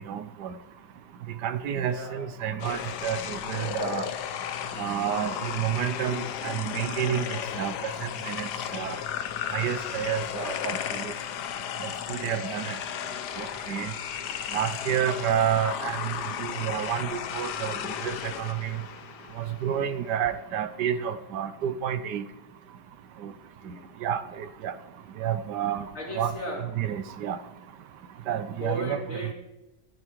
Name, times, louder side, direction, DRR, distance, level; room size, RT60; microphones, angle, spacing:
voice 1, 0.1-0.5 1.4-4.1 4.8-7.9 8.2-9.0 9.5-11.1 12.1-12.8 13.4-13.9 14.5-16.1 16.4-17.7 18.0-18.8 19.4-22.2 23.2-23.3 24.0-24.7 25.2-25.9 26.2-26.3 26.8-27.4 28.3-29.0, right 9 dB, 80° right, 12 dB, 1.3 m, -29 dB
voice 2, 1.9-2.3 23.6-23.9 25.9-26.7 28.6-29.3, equal, 40° left, 0 dB, 2.7 m, -36 dB
sound 1, 2.6-19.9, left 9 dB, 80° left, 1.3 m, -34 dB
12.5 x 12.5 x 4.6 m, 0.99 s
omnidirectional pair, 1.8 m